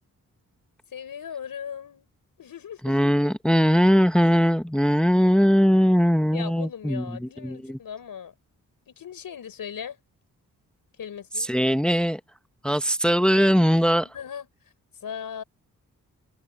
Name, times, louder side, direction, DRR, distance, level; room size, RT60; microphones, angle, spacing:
voice 1, 0.9-2.1 2.4-2.9 6.3-8.3 8.9-10.0 11.0-11.5 14.0-14.5 15.0-15.4, left 8 dB, 80° left, 5.2 m, -38 dB
voice 2, 2.8-7.8 11.4-12.2 12.6-14.1, equal, 5° left, 1.1 m, -20 dB
cardioid pair, 55°, 34 cm